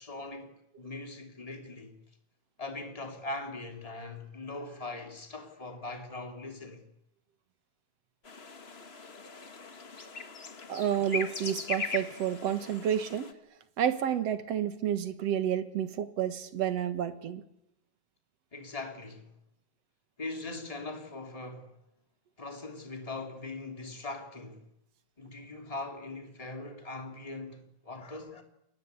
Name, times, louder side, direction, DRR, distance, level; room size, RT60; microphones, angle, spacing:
voice 1, 0.0-2.0 2.6-6.9 18.5-19.3 20.2-21.7 22.4-24.6 25.2-28.4, left 2 dB, 10° left, 2.7 m, -41 dB
sound 1, 8.2-13.3, left 4 dB, 35° left, 1.0 m, -40 dB
voice 2, 10.7-13.3 13.8-17.4, right 9 dB, 60° right, 2.4 m, -30 dB
29.0 x 21.5 x 8.2 m
omnidirectional pair, 3.4 m